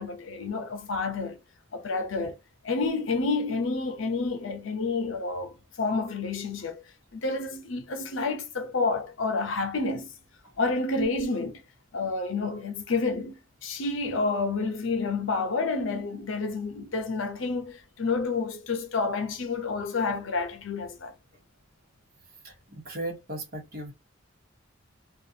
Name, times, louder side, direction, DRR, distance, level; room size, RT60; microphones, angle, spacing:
voice 1, 0.0-1.4 1.7-2.4 2.6-6.8 7.1-10.1 10.6-11.6 11.9-21.1, left 3 dB, 75° left, 0.7 m, -29 dB
voice 2, 22.4-23.9, right 1 dB, 50° right, 1.1 m, -37 dB
2.5 x 2.4 x 2.7 m
head